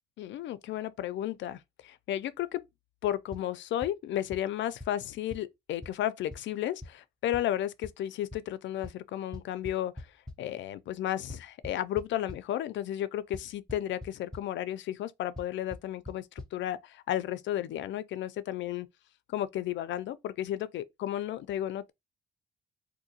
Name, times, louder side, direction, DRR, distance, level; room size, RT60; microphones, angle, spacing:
voice 1, 0.2-2.6 3.0-10.1 10.4-16.3 16.5-18.9 19.3-21.9, left 12 dB, 70° left, 0.4 m, -33 dB
sound 1, 3.3-3.4 3.8-3.9 4.3-4.4 4.8-4.9 5.3-5.4 5.8-5.9 6.3-6.4 6.8-6.9 7.3-7.4 7.8-7.9 8.3-8.4 8.8-8.9 9.3-10.3 11.3-12.4 13.3-13.4 13.7-14.1 14.3-14.4 15.4-15.5 15.7-15.8 16.1-16.2 16.4-16.5, left 2 dB, 5° left, 0.7 m, -41 dB
3.6 x 2.6 x 2.8 m
cardioid pair, 90°, 20 cm